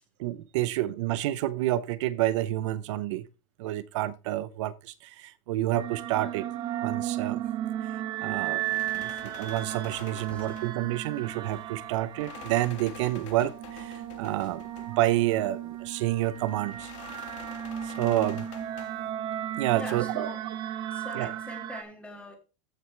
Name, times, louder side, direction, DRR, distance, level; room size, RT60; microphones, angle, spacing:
voice 1, 0.2-3.3 3.6-6.5 6.8-7.4 7.8-16.9 17.8-18.5 19.6-20.3 21.1-21.3, right 15 dB, 65° right, 0.6 m, -29 dB
sound 1, 5.7-21.8, right 11 dB, 25° right, 0.7 m, -35 dB
sound 2, 8.4-19.1, left 10 dB, 65° left, 1.5 m, -49 dB
voice 2, 19.7-20.4 20.9-22.3, left 2 dB, 5° left, 2.0 m, -42 dB
14.0 x 6.1 x 3.3 m
supercardioid pair, 165°, 17 cm